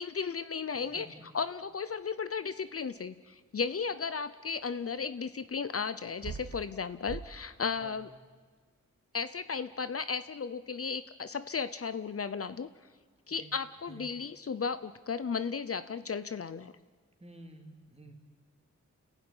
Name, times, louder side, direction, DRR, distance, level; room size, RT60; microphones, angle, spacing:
voice 1, 0.0-1.1 1.3-8.1 9.1-12.7 13.3-16.7, left 5 dB, 50° left, 14 dB, 0.7 m, -35 dB
voice 2, 0.7-1.3 7.7-8.0 13.3-13.5 13.9-14.1 17.2-18.2, right 2 dB, 20° right, 2 dB, 3.2 m, -51 dB
sound 1, 4.7-4.8 6.0-6.8 7.1-7.3, right 6 dB, 75° right, 1.5 m, -41 dB
29.5 x 16.0 x 9.7 m, 1.5 s
wide cardioid pair, 125°, 30 cm